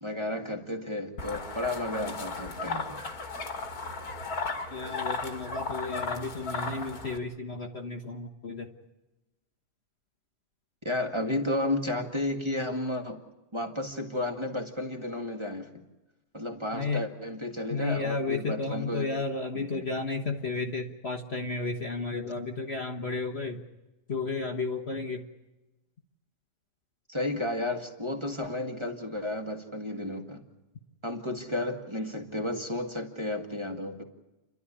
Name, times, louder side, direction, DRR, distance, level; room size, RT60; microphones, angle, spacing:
voice 1, 0.0-3.0 10.8-13.2 13.5-15.7 16.3-19.1 19.5-19.8 27.1-30.5 31.0-34.0, left 1 dB, 15° right, 2 dB, 1.9 m, -32 dB
sound 1, 1.2-7.2, left 3 dB, 60° left, 2.3 m, -35 dB
voice 2, 4.7-8.7 16.7-17.1 17.7-23.6 24.1-25.2, left 3 dB, 40° left, 3 dB, 1.5 m, -33 dB
30.0 x 12.5 x 10.0 m, 1.0 s
omnidirectional pair, 1.8 m